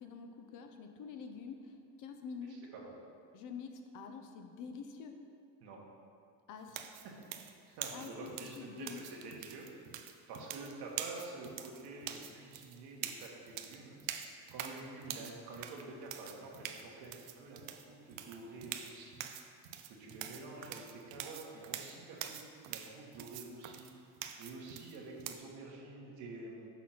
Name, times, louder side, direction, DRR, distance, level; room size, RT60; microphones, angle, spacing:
voice 1, 0.0-2.6 3.3-5.2 6.5-6.9 7.9-8.1 8.4-9.3, left 5 dB, 50° left, 5 dB, 0.8 m, -47 dB
voice 2, 2.5-2.9 5.6-5.8 7.6-9.8 10.3-14.0 14.5-19.3 19.9-23.9 24.4-26.7, right 3 dB, 70° right, -1 dB, 1.6 m, -48 dB
sound 1, 6.7-25.4, right 10 dB, 90° right, 0.6 m, -45 dB
6.0 x 4.2 x 5.8 m, 2.3 s
supercardioid pair, 100°, 39 cm